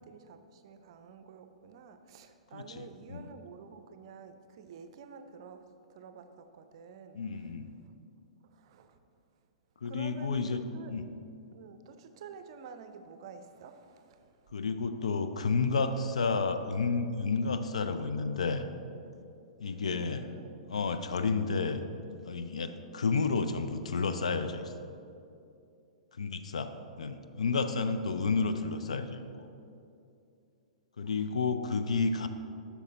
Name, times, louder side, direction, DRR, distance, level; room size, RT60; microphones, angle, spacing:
voice 1, 0.0-5.6 5.9-7.2 8.5-9.0 9.8-10.9 11.5-14.3 19.7-20.6, right 6 dB, 50° right, 9 dB, 0.5 m, -49 dB
voice 2, 2.5-3.2 7.1-7.7 9.8-10.6 10.9-11.1 14.5-18.7 19.6-20.3 20.7-21.8 22.3-24.9 26.2-26.7 27.0-29.5 31.0-32.3, left 4 dB, 70° left, 9 dB, 0.5 m, -31 dB
8.3 x 5.9 x 4.0 m, 2.6 s
figure-of-eight pair, 110°, 4 cm